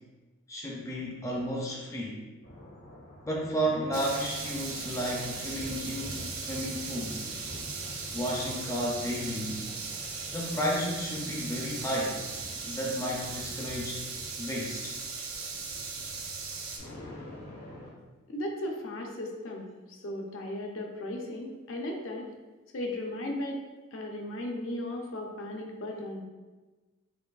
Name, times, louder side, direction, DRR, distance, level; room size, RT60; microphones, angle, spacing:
voice 1, 0.5-2.3 3.2-7.3 8.1-9.6 10.3-12.2 12.6-14.0 14.4-14.9, equal, 15° left, -2 dB, 0.4 m, -32 dB
sound 1, 2.4-17.9, left 1 dB, 85° left, 1.2 m, -47 dB
sound 2, 3.9-16.8, right 4 dB, 85° right, 0.6 m, -38 dB
voice 2, 18.3-22.3 22.7-23.6 23.9-26.2, left 1 dB, 65° left, 1 dB, 0.5 m, -36 dB
4.7 x 2.5 x 2.3 m, 1.2 s
head